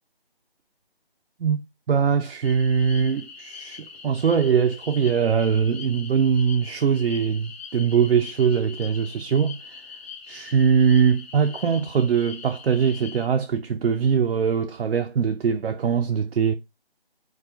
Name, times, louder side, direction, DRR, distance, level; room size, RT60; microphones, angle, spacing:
voice 1, 1.9-9.8 10.3-16.5, right 7 dB, 85° right, 0.5 m, -22 dB
sound 1, 2.4-13.3, left 6 dB, 80° left, 0.6 m, -42 dB
2.4 x 2.3 x 3.4 m
figure-of-eight pair, 170°, 30 cm